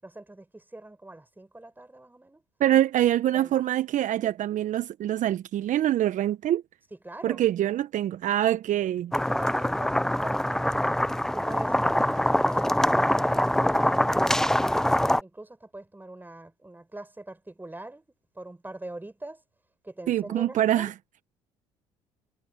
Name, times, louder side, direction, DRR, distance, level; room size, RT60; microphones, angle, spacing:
voice 1, 0.0-2.4 3.3-3.6 7.0-7.4 9.1-11.0 11.3-12.8 13.1-14.0 14.2-18.1 18.4-19.4 19.8-20.9, right 2 dB, 10° right, 5.7 m, -43 dB
voice 2, 2.6-6.6 7.2-9.1 20.1-20.9, right 12 dB, 55° right, 1.1 m, -25 dB
sound 1, 9.1-15.2, left 1 dB, 5° left, 0.6 m, -24 dB
hypercardioid pair, 60°, 15 cm